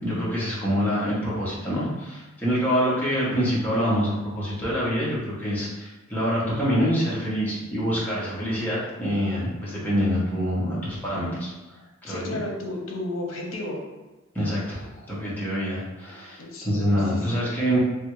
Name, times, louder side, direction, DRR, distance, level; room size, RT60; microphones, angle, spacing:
voice 1, 0.0-11.5 12.0-12.3 14.3-17.8, equal, 10° left, -9 dB, 1.0 m, -26 dB
voice 2, 12.0-13.8 16.4-17.1, left 1 dB, 75° left, 0 dB, 0.8 m, -33 dB
3.4 x 2.4 x 3.1 m, 1.1 s
head